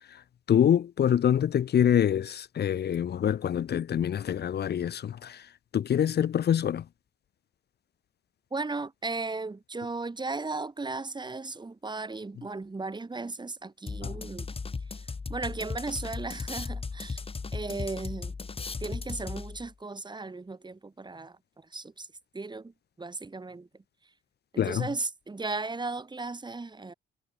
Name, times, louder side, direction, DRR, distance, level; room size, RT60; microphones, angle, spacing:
voice 1, 0.5-5.4 5.7-6.8 14.0-14.1 24.6-24.9, left 9 dB, 55° left, 1.3 m, -25 dB
voice 2, 8.5-14.5 14.9-17.2 17.5-18.4 18.8-22.1 22.3-23.7 24.5-26.9, right 3 dB, 20° right, 4.5 m, -36 dB
sound 1, 13.9-19.7, left 4 dB, 30° left, 3.4 m, -36 dB
cardioid pair, 90°, 20 cm